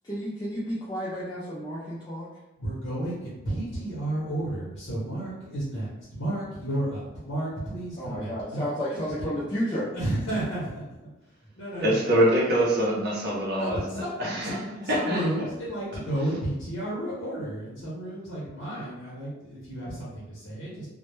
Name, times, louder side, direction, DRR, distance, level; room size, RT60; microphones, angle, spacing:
voice 1, 0.1-2.3 8.0-9.9, equal, 20° left, -9 dB, 0.3 m, -31 dB
voice 2, 2.6-9.3 9.9-10.8 11.5-12.2 13.5-14.2 14.4-20.9, right 1 dB, 70° left, -7 dB, 0.8 m, -32 dB
voice 3, 11.8-14.5 14.9-15.2, right 1 dB, 50° right, -4 dB, 0.6 m, -24 dB
2.1 x 2.0 x 3.0 m, 1.0 s
head